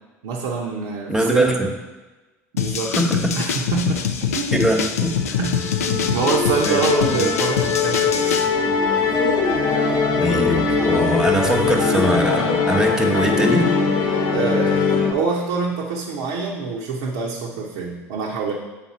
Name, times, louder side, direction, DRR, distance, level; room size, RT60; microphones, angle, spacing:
voice 1, 0.2-1.6 2.5-2.9 3.3-4.0 4.3-4.8 5.4-5.6 5.8-8.4 14.3-18.5, right 4 dB, 75° right, -3 dB, 0.8 m, -25 dB
voice 2, 1.1-1.7 2.8-3.3 4.5-5.6 6.6-6.8 7.2-7.3 10.1-13.7, right 1 dB, 10° right, 3 dB, 1.0 m, -21 dB
sound 1, 2.6-8.5, left 7 dB, 90° left, 0.4 m, -24 dB
Musical instrument, 5.0-15.1, left 5 dB, 60° left, 0.9 m, -21 dB
7.5 x 3.8 x 4.1 m, 1.2 s
hypercardioid pair, 75°, 8 cm